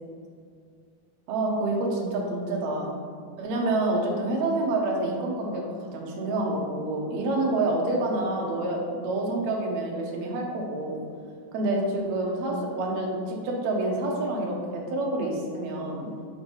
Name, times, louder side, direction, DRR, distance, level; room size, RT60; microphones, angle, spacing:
voice 1, 1.3-3.0 3.4-11.0 11.5-16.1, right 2 dB, 70° right, -1 dB, 2.0 m, -28 dB
5.2 x 3.8 x 5.3 m, 2.2 s
omnidirectional pair, 3.7 m